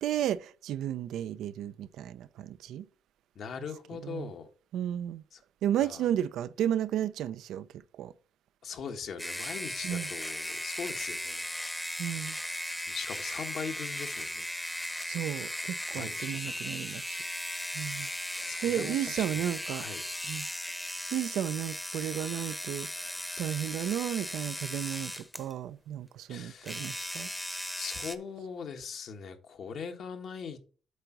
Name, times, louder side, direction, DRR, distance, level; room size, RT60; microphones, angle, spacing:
voice 1, 0.0-2.9 4.0-4.3 4.7-5.2 5.6-8.1 9.8-10.1 12.0-12.4 15.0-17.2 17.7-18.1 18.4-19.9 20.2-20.5 21.1-27.3, right 11 dB, 80° right, 0.5 m, -33 dB
voice 2, 3.3-4.5 5.3-5.4 5.8-6.1 8.6-11.5 12.9-14.5 15.9-16.9 18.0-18.1 18.4-19.4 19.7-20.0 26.3-26.9 27.8-30.6, left 6 dB, 65° left, 1.3 m, -41 dB
sound 1, 9.2-25.5 26.6-28.1, left 1 dB, 5° left, 0.8 m, -37 dB
8.1 x 4.0 x 5.8 m
cardioid pair, 90°, 0 cm